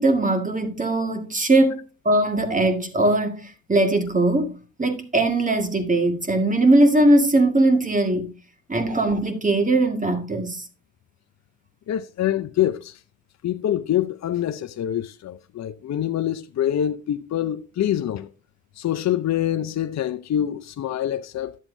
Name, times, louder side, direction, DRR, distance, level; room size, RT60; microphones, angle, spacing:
voice 1, 0.0-1.8 2.1-4.5 4.8-8.3 8.7-10.6, right 2 dB, 25° right, 1.8 m, -20 dB
voice 2, 11.9-13.0 13.4-18.3 18.8-21.6, left 11 dB, 55° left, 0.6 m, -25 dB
11.0 x 7.3 x 2.6 m
supercardioid pair, 55°, 32 cm